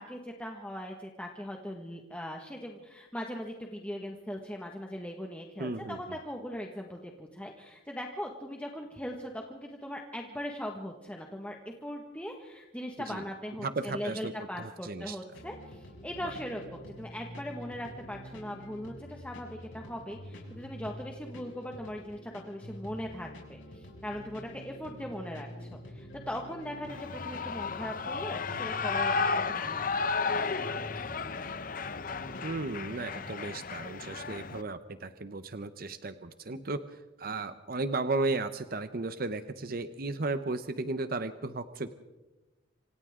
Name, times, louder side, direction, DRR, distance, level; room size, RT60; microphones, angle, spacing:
voice 1, 0.0-11.6 11.8-30.1, equal, 5° left, 1 dB, 1.6 m, -40 dB
voice 2, 5.6-6.0 13.1-13.2 13.6-14.3 14.6-15.2 16.2-16.3 32.4-41.9, right 3 dB, 50° right, 11 dB, 0.8 m, -35 dB
sound 1, 15.3-32.6, equal, 90° left, 6.5 m, -47 dB
Shout / Cheering, 26.9-34.6, left 4 dB, 45° left, 0.8 m, -33 dB
27.0 x 26.5 x 3.8 m, 1.1 s
head